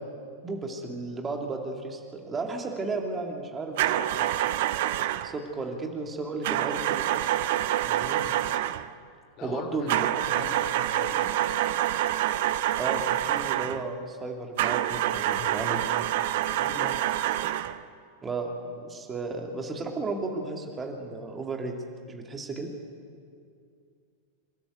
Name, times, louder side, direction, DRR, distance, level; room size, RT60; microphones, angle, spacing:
voice 1, 0.4-4.3 5.2-7.1 7.9-8.2 9.4-10.1 12.8-15.8 18.2-21.7 22.1-22.7, right 3 dB, 20° right, 2 dB, 2.7 m, -34 dB
sound 1, 3.8-5.4 6.4-8.9 9.9-13.9 14.6-17.8, right 13 dB, 50° right, 0.7 m, -27 dB
voice 2, 9.4-10.0 10.3-11.4 15.3-16.0 16.5-17.2, left 5 dB, 40° left, 5 dB, 2.6 m, -42 dB
27.5 x 13.5 x 8.1 m, 2.3 s
figure-of-eight pair, 90°, 0 cm